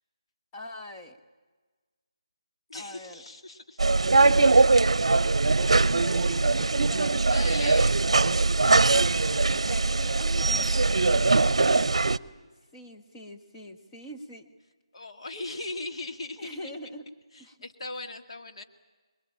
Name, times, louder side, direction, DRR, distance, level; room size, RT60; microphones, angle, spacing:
voice 1, 0.5-1.2 2.7-3.2 3.9-4.8 5.6-7.1 7.6-7.9 8.6-9.2 9.7-12.1 12.7-14.5 16.4-17.1 17.4-17.6, left 1 dB, 15° left, 2 dB, 1.5 m, -42 dB
voice 2, 2.7-3.8 7.3-8.0 14.9-16.6 17.3-18.6, left 2 dB, 60° left, 4 dB, 2.4 m, -38 dB
sound 1, 3.8-12.2, right 3 dB, 65° right, 0.7 m, -21 dB
26.0 x 21.5 x 8.8 m, 1.3 s
figure-of-eight pair, 160°, 3 cm